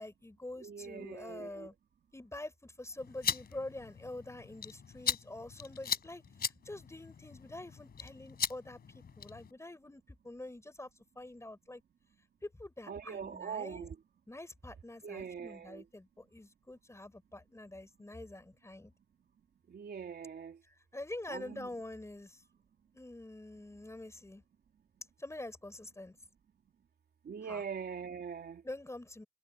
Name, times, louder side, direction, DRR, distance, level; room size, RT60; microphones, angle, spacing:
voice 1, 0.0-1.7 2.1-6.2 6.6-10.9 11.2-11.8 12.4-13.9 14.3-18.9 20.7-22.4 22.9-24.4 25.2-26.2 27.5-27.6 28.6-29.2, left 2 dB, 15° left, 6.0 m, -46 dB
voice 2, 0.6-1.7 12.9-14.0 15.0-15.8 19.7-20.6 21.3-21.7 27.3-28.6, right 6 dB, 65° right, 2.9 m, -42 dB
sound 1, 3.0-9.5, left 7 dB, 65° left, 4.4 m, -39 dB
cardioid pair, 80°, 18 cm